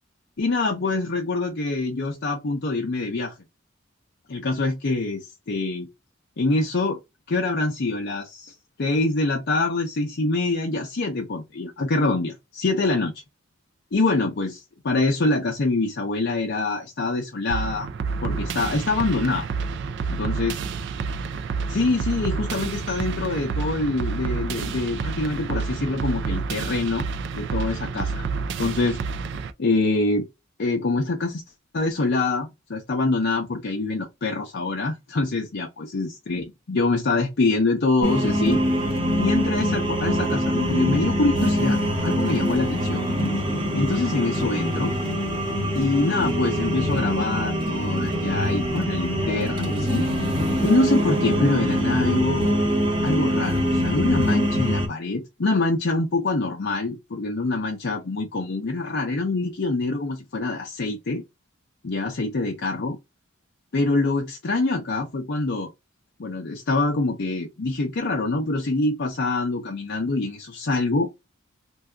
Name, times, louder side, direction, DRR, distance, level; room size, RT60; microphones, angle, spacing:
voice 1, 0.4-3.4 4.3-5.9 6.4-7.0 7.3-13.1 13.9-17.9 18.2-19.5 20.2-20.6 21.7-29.0 29.6-30.3 30.6-31.4 31.7-38.6 39.2-43.0 43.4-43.5 43.7-44.9 45.7-50.0 50.6-52.5 53.0-61.2 61.8-63.0 63.7-65.7 66.2-71.1, left 3 dB, 55° left, 0.6 m, -25 dB
sound 1, 17.5-29.5, right 5 dB, 60° right, 0.4 m, -29 dB
sound 2, 38.0-54.9, equal, 25° right, 1.1 m, -24 dB
2.7 x 2.3 x 3.4 m
head